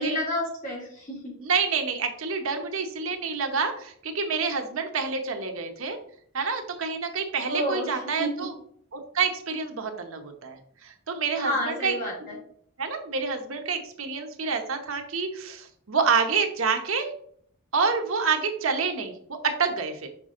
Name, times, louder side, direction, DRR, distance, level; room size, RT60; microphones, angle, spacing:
voice 1, 0.0-1.3 7.5-8.5 11.3-12.4, equal, 40° left, -4 dB, 2.8 m, -30 dB
voice 2, 1.4-6.0 6.3-8.5 8.9-11.9 12.3-12.4 12.8-17.1 17.7-20.1, right 5 dB, 70° right, 5 dB, 1.0 m, -28 dB
5.9 x 5.1 x 3.7 m, 0.63 s
head